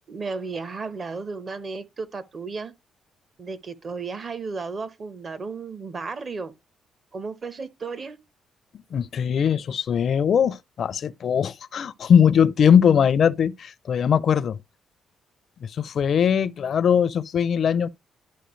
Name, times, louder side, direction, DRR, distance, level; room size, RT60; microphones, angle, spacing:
voice 1, 0.1-2.7 3.4-6.5 7.1-8.2, right 4 dB, 40° right, 1.0 m, -34 dB
voice 2, 8.9-14.6 15.6-17.9, left 8 dB, 55° left, 0.5 m, -20 dB
11.5 x 4.4 x 3.1 m
cardioid pair, 90°, 0 cm